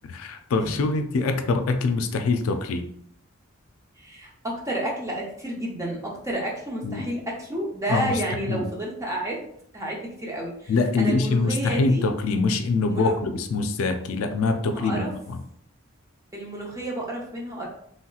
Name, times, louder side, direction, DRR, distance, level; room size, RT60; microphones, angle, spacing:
voice 1, 0.1-2.9 6.8-7.1 7.9-8.2 8.5-8.7 10.7-15.4, left 3 dB, 85° left, 7 dB, 0.4 m, -24 dB
voice 2, 4.0-9.4 9.7-12.0 12.9-13.1 14.7-15.1 16.3-17.7, right 1 dB, 15° right, -2 dB, 0.6 m, -31 dB
3.1 x 2.8 x 2.3 m, 0.67 s
head